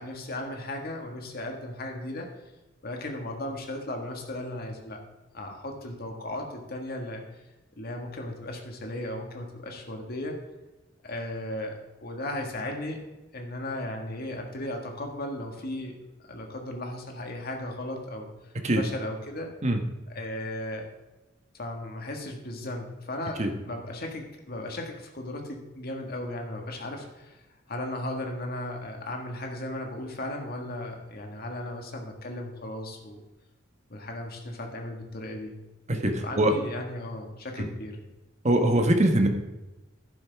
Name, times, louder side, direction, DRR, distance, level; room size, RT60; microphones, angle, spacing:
voice 1, 0.0-2.3 2.8-5.0 5.3-7.2 7.8-10.4 11.0-13.0 13.3-18.3 18.8-19.5 20.1-20.9 21.5-27.4 27.7-33.2 33.9-35.6 36.1-38.0, left 1 dB, 55° left, 2 dB, 1.8 m, -36 dB
voice 2, 35.9-36.5 38.4-39.3, right 1 dB, 35° right, 4 dB, 1.2 m, -22 dB
11.0 x 10.5 x 3.5 m, 1.1 s
head